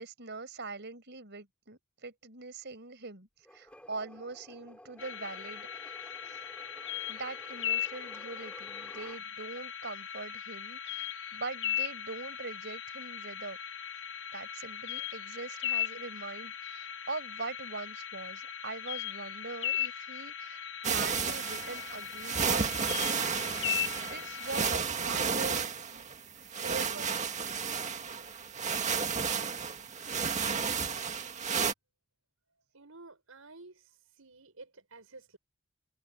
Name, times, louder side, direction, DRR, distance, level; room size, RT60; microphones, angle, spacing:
voice 1, 0.0-5.7 6.3-6.4 7.1-13.6 14.3-23.4 23.9-26.1 26.4-27.2, right 3 dB, 55° right, 4.9 m, -42 dB
sound 1, 3.4-9.2, equal, 5° left, 4.9 m, -53 dB
sound 2, 5.0-24.7, left 10 dB, 60° left, 1.0 m, -38 dB
sound 3, 20.8-31.7, right 6 dB, 35° right, 1.9 m, -32 dB
voice 2, 32.7-35.4, right 3 dB, 85° right, 5.8 m, -52 dB
head